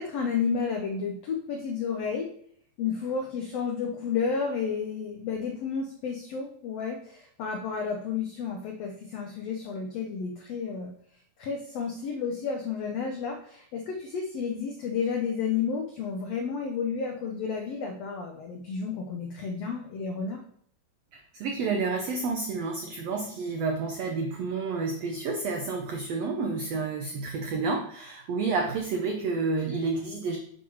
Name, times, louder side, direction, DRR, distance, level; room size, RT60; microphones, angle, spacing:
voice 1, 0.0-2.3 2.8-10.9 11.4-20.4, left 6 dB, 85° left, 2 dB, 1.4 m, -31 dB
voice 2, 21.1-30.4, right 4 dB, 90° right, 2 dB, 1.4 m, -30 dB
7.5 x 3.1 x 6.1 m, 0.64 s
omnidirectional pair, 3.9 m